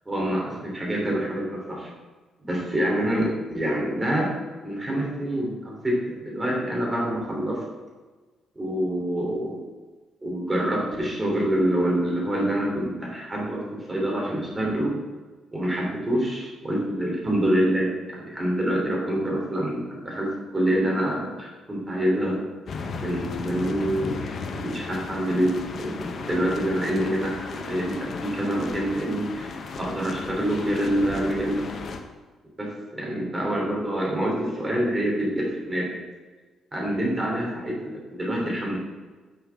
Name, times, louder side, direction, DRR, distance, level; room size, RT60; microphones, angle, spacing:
voice 1, 0.0-1.9 2.4-4.3 4.6-7.6 8.5-9.6 10.2-14.9 15.5-22.4 23.0-24.2 24.5-25.5 25.8-31.7 32.6-36.0 36.7-38.8, right 1 dB, 20° right, -2 dB, 3.3 m, -26 dB
sound 1, 22.7-32.0, left 4 dB, 55° left, 1.0 m, -35 dB
9.9 x 8.0 x 3.6 m, 1.3 s
cardioid pair, 90°, 0 cm